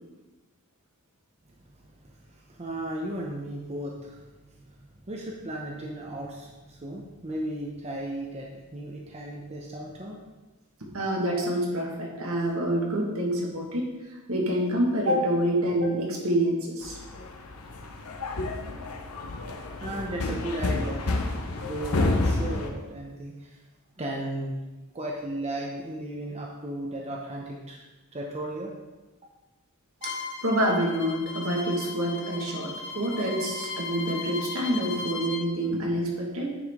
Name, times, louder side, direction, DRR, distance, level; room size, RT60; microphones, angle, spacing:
voice 1, 2.0-4.2 4.6-4.7 5.1-10.2 19.8-21.3 21.6-23.6 24.0-24.6 24.9-27.8 28.1-28.7, right 1 dB, 30° right, -1 dB, 0.7 m, -35 dB
voice 2, 10.8-13.9 14.3-17.0 30.0-30.1 30.4-36.5, right 1 dB, 70° right, -2 dB, 1.7 m, -27 dB
sound 1, 16.8-22.7, left 2 dB, 85° left, 0.8 m, -30 dB
Bowed string instrument, 30.0-35.4, left 4 dB, 55° left, 0.9 m, -37 dB
9.6 x 4.9 x 3.6 m, 1.1 s
head